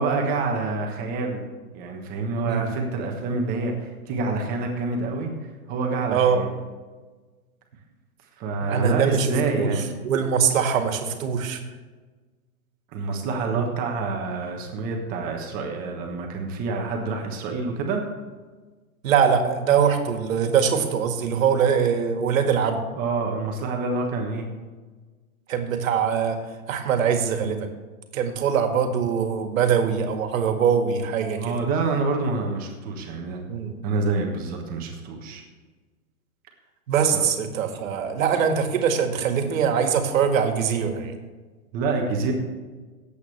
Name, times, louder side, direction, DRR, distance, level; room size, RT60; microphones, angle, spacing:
voice 1, 0.0-1.5 1.7-5.3 5.7-6.5 8.4-9.9 12.9-18.0 22.9-24.5 31.4-33.4 33.8-35.4 37.1-37.2 37.6-37.7 41.7-42.3, right 3 dB, 20° right, 2 dB, 1.2 m, -27 dB
voice 2, 6.1-6.4 8.7-9.7 10.0-11.6 13.5-13.7 19.0-22.8 25.5-26.4 26.7-27.7 28.1-31.6 33.5-33.7 36.9-41.1, right 7 dB, 60° right, 5 dB, 1.8 m, -22 dB
18.0 x 8.3 x 3.3 m, 1.3 s
hypercardioid pair, 160°, 44 cm